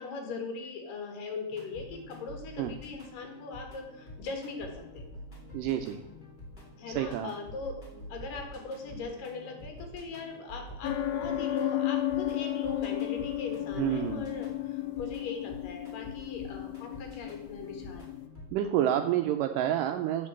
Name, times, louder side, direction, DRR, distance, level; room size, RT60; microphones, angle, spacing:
voice 1, 0.0-5.1 6.8-18.0, left 4 dB, 70° left, 3 dB, 3.2 m, -40 dB
sound 1, 1.5-18.5, left 1 dB, 15° left, 3.2 m, -48 dB
voice 2, 5.5-6.0 6.9-7.3 13.8-14.3 18.5-20.3, right 11 dB, 80° right, 7 dB, 1.9 m, -29 dB
sound 2, 10.8-18.3, left 13 dB, 85° left, 2.5 m, -33 dB
8.3 x 6.5 x 7.2 m, 0.96 s
omnidirectional pair, 4.2 m